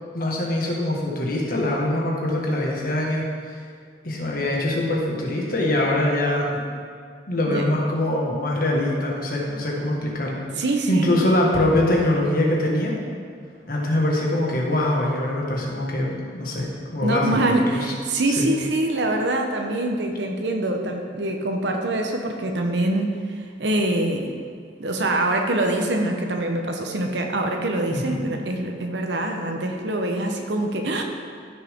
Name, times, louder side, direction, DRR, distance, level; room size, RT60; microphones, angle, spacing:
voice 1, 0.1-3.6 4.0-6.6 7.3-10.4 10.9-13.0 13.7-17.9 18.4-18.5 27.9-28.2, left 1 dB, 50° left, -2 dB, 1.7 m, -23 dB
voice 2, 10.6-11.2 17.0-24.3 24.8-31.0, right 1 dB, 65° right, 3 dB, 1.0 m, -24 dB
14.5 x 6.4 x 3.7 m, 2.1 s
head